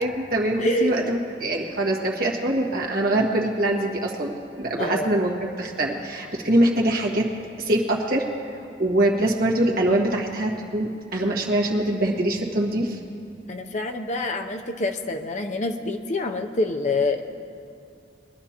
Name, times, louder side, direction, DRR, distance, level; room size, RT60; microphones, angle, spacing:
voice 1, 0.0-7.3 7.6-8.3 8.8-13.0, right 1 dB, 55° right, -1 dB, 1.6 m, -23 dB
voice 2, 0.6-1.1 4.8-5.2 13.5-17.2, left 2 dB, 40° left, 5 dB, 0.6 m, -26 dB
22.0 x 11.5 x 2.9 m, 2.4 s
head